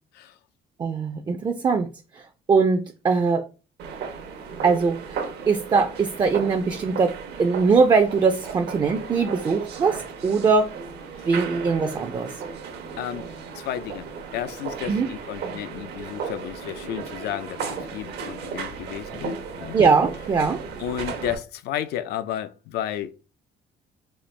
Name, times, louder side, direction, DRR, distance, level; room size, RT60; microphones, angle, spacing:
voice 1, 0.8-3.4 4.6-10.7 11.2-12.3 14.9-15.1 19.7-20.6, right 4 dB, 25° right, 0.4 m, -21 dB
sound 1, 3.8-21.3, right 6 dB, 75° right, 0.8 m, -35 dB
voice 2, 13.0-19.8 20.8-23.1, left 11 dB, 75° left, 0.5 m, -32 dB
4.2 x 2.4 x 3.2 m
cardioid pair, 110°, 17 cm